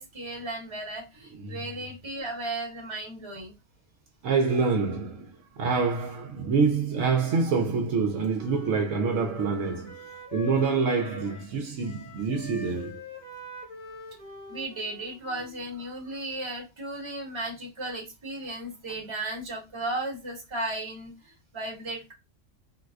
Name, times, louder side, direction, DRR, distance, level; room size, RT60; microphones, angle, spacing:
voice 1, 0.0-3.6 14.5-22.1, right 2 dB, 25° right, 1.0 m, -35 dB
voice 2, 4.2-10.0 10.3-13.0, right 5 dB, 70° right, 0.9 m, -26 dB
Wind instrument woodwind instrument, 7.9-11.6 11.8-15.7, left 3 dB, 40° left, 0.9 m, -44 dB
3.8 x 2.2 x 2.3 m
omnidirectional pair, 1.4 m